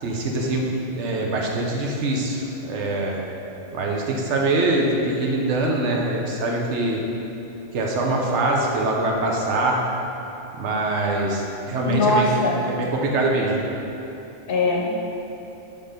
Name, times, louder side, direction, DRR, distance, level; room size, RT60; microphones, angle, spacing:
voice 1, 0.0-3.2 3.7-7.0 7.7-9.9 10.6-12.3 12.6-13.7, right 2 dB, 80° right, -1 dB, 1.1 m, -23 dB
voice 2, 11.9-12.6 14.5-14.9, left 2 dB, 60° left, -1 dB, 0.8 m, -21 dB
5.9 x 3.7 x 5.0 m, 2.9 s
omnidirectional pair, 1.2 m